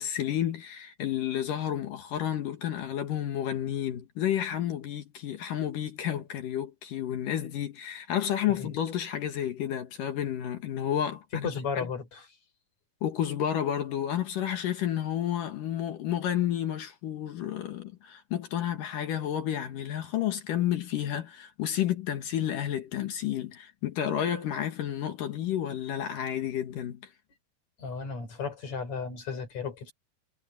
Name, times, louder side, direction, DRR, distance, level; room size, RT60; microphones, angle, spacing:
voice 1, 0.0-11.5 11.8-11.9 13.0-27.0, left 10 dB, 60° left, 2.5 m, -31 dB
voice 2, 11.3-12.3 27.8-29.9, left 5 dB, 40° left, 5.1 m, -34 dB
omnidirectional pair, 5.2 m